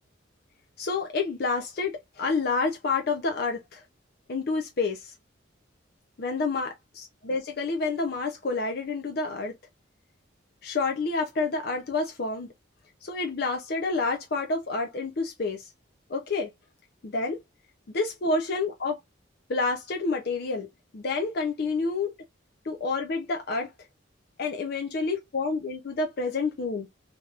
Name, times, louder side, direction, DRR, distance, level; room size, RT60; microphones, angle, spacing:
voice 1, 0.8-3.8 4.3-5.1 6.2-9.5 10.6-12.5 13.0-15.7 16.1-16.5 17.0-17.4 17.9-19.0 19.5-20.7 20.9-22.1 22.6-23.7 24.4-26.9, left 3 dB, 50° left, 0.5 m, -29 dB
3.3 x 2.9 x 2.4 m
head